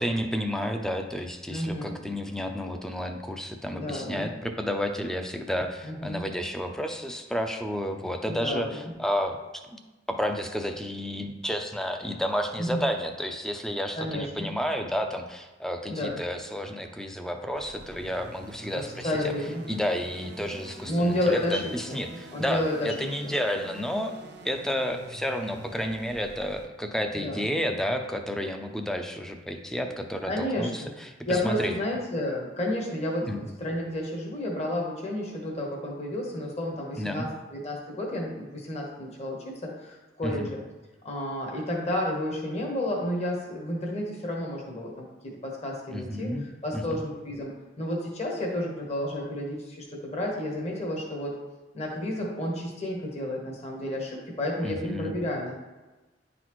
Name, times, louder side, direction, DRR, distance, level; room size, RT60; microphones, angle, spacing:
voice 1, 0.0-9.8 10.1-19.1 19.7-24.1 24.4-31.7 33.2-33.4 37.0-37.3 40.2-40.5 45.9-46.5 46.7-47.0 54.6-55.1, equal, 5° left, 5 dB, 0.5 m, -31 dB
voice 2, 1.5-2.0 3.7-4.3 5.8-6.2 8.3-8.8 12.6-12.9 13.9-14.5 15.9-16.2 18.7-19.6 20.9-22.9 23.2-23.3 27.1-27.5 30.3-30.9 31.3-40.6 41.0-51.3 51.7-55.5, left 1 dB, 35° left, -2 dB, 1.2 m, -31 dB
sound 1, 17.5-26.7, right 2 dB, 60° right, 0.6 m, -46 dB
10.0 x 4.1 x 3.1 m, 1.2 s
head